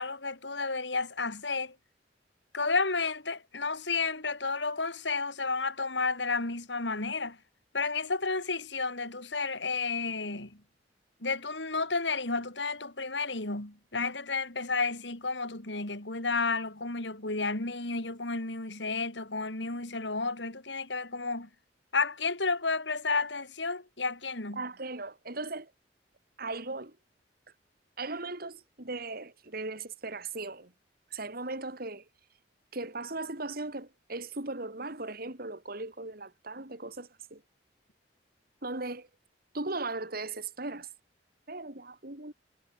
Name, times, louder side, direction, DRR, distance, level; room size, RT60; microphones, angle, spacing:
voice 1, 0.0-1.7 2.5-7.4 7.7-10.6 11.2-21.5 21.9-24.6, left 4 dB, 75° left, 4.1 m, -32 dB
voice 2, 24.5-25.7 26.4-27.0 28.0-30.7 31.1-32.1 32.7-37.4 38.6-39.1 39.5-40.9 41.5-42.3, right 3 dB, 55° right, 3.5 m, -38 dB
head